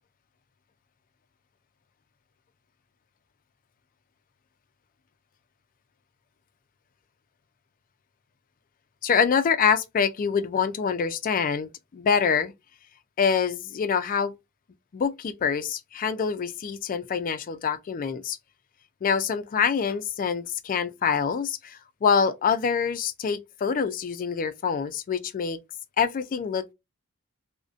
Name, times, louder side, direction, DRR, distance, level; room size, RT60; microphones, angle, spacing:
voice 1, 9.0-12.5 13.2-14.3 14.9-18.4 19.0-25.6 26.0-26.7, left 6 dB, 40° left, 0.3 m, -25 dB
2.5 x 2.1 x 2.3 m
head